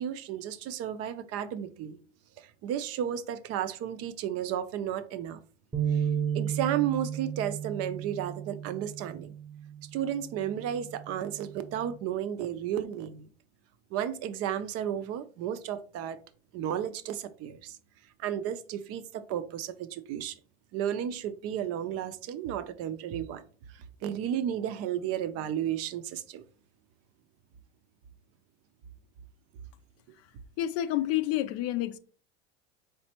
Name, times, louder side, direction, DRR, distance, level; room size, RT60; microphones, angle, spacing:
voice 1, 0.0-2.0 2.4-5.4 5.9-6.1 6.3-9.3 9.9-13.3 13.9-16.2 16.5-17.8 18.2-20.4 20.7-23.5 23.7-26.4, right 10 dB, 45° right, 0.5 m, -33 dB
sound 1, 5.7-12.0, right 8 dB, 15° right, 0.7 m, -34 dB
voice 2, 30.6-32.0, left 13 dB, 50° left, 0.5 m, -29 dB
4.1 x 3.2 x 2.9 m
hypercardioid pair, 90°, 33 cm